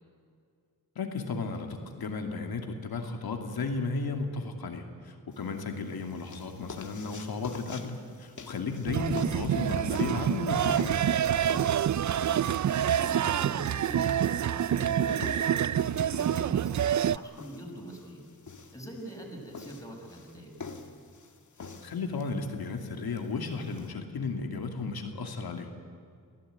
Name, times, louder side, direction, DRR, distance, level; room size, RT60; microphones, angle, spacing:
voice 1, 0.9-11.1 21.8-25.9, left 4 dB, 85° left, 4 dB, 2.7 m, -34 dB
sound 1, 5.3-23.9, left 4 dB, 55° left, 2.2 m, -47 dB
sound 2, 8.9-17.2, right 10 dB, 55° right, 0.5 m, -27 dB
voice 2, 12.0-18.3 18.7-20.6, equal, 10° left, 0 dB, 6.3 m, -44 dB
25.5 x 17.0 x 9.5 m, 2.2 s
cardioid pair, 80°, 36 cm